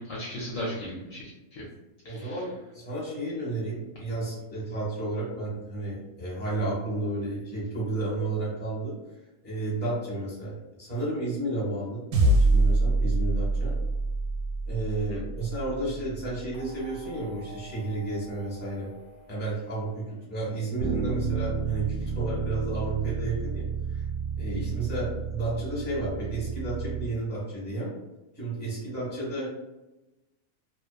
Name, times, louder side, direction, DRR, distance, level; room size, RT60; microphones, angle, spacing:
voice 1, 0.0-1.7 2.0-2.4 15.1-15.2, equal, 65° left, -5 dB, 0.9 m, -36 dB
voice 2, 2.0-8.9 9.4-13.7 14.6-18.9 19.3-24.0 24.4-27.9 28.3-29.5, right 2 dB, 10° left, -7 dB, 0.9 m, -32 dB
sound 1, 12.1-16.7, right 2 dB, 90° right, 1.1 m, -25 dB
sound 2, 16.5-20.8, right 1 dB, 85° left, 0.3 m, -51 dB
Bass guitar, 20.8-27.1, right 5 dB, 70° right, 0.9 m, -32 dB
2.8 x 2.2 x 2.2 m, 1.0 s
omnidirectional pair, 1.6 m